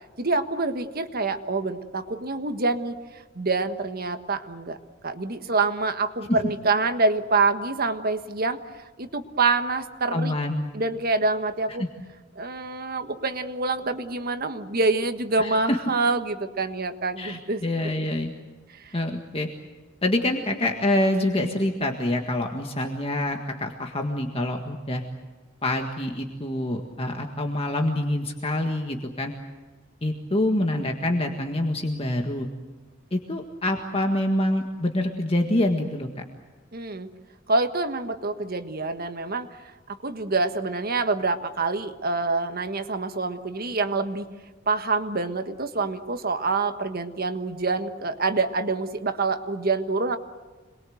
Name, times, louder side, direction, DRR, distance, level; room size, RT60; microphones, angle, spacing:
voice 1, 0.2-2.9 3.3-4.8 5.0-8.6 9.0-10.3 10.7-11.8 12.3-17.6 18.8-18.9 36.7-37.1 37.5-44.3 44.7-50.2, right 3 dB, 50° right, 8 dB, 1.5 m, -26 dB
voice 2, 10.1-10.7 11.8-11.9 15.4-15.8 17.2-18.3 18.9-19.5 20.0-25.0 25.6-29.3 30.0-32.5 33.1-36.1, left 1 dB, 30° left, 3 dB, 1.8 m, -26 dB
27.0 x 21.5 x 7.9 m, 1.3 s
head